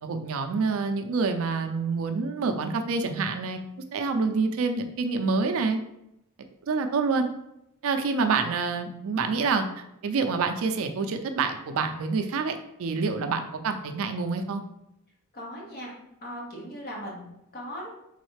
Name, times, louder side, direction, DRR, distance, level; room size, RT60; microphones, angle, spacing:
voice 1, 0.0-3.6 3.9-5.8 6.6-7.3 7.8-9.7 10.0-14.6, right 4 dB, 65° right, 6 dB, 0.4 m, -27 dB
voice 2, 15.3-15.9 16.2-17.9, equal, 45° left, -3 dB, 1.2 m, -38 dB
3.9 x 3.1 x 3.2 m, 0.81 s
head